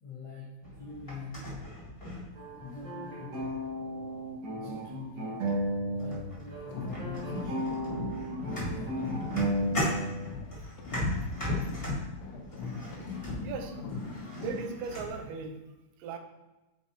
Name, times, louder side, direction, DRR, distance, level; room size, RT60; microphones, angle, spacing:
voice 1, 0.0-1.5 2.4-3.7 4.5-5.4 6.0-7.8 8.4-9.0 10.5-10.6 11.0-11.1, left 4 dB, 55° left, -6 dB, 1.6 m, -44 dB
sound 1, 0.6-2.8 3.3-3.8 4.9-5.0 5.5-5.7 6.0-15.2, left 1 dB, 15° left, 1.1 m, -37 dB
sound 2, 2.4-6.3 6.5-10.3, right 1 dB, 65° right, 2.7 m, -34 dB
sound 3, 6.6-10.5 10.8-14.8, left 3 dB, 75° left, 1.2 m, -40 dB
voice 2, 13.4-13.8 14.3-15.6 16.0-16.2, right 5 dB, 90° right, 6 dB, 2.3 m, -37 dB
8.2 x 6.1 x 2.8 m, 1.0 s
omnidirectional pair, 3.7 m